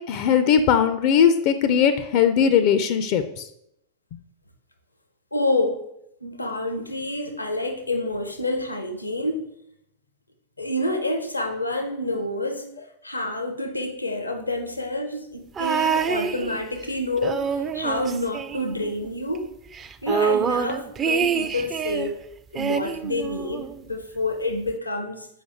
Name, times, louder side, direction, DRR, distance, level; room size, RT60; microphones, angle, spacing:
voice 1, 0.0-3.2, left 8 dB, 45° left, 9 dB, 0.4 m, -19 dB
voice 2, 5.3-5.8 6.2-9.5 10.6-12.6 13.0-19.5 20.0-22.2 22.5-25.3, left 2 dB, 85° left, 5 dB, 0.8 m, -28 dB
sound 1, 15.6-16.9 17.2-19.1 19.4-19.5 19.7-22.1 22.6-23.8 24.7-24.8, right 7 dB, 25° right, 0.4 m, -26 dB
7.1 x 5.1 x 3.5 m, 0.79 s
figure-of-eight pair, 90°, 0 cm